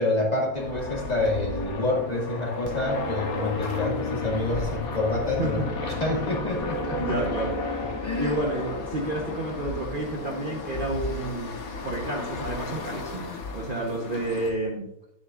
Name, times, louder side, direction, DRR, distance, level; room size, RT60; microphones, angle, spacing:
voice 1, 0.0-7.1 8.0-8.4, left 2 dB, 25° left, -3 dB, 2.1 m, -28 dB
sound 1, 0.6-14.5, left 3 dB, 65° left, 1.6 m, -33 dB
voice 2, 7.0-7.6 8.2-11.6 11.8-14.9, right 2 dB, 35° right, -1 dB, 1.2 m, -30 dB
10.0 x 8.5 x 2.5 m, 0.79 s
omnidirectional pair, 1.6 m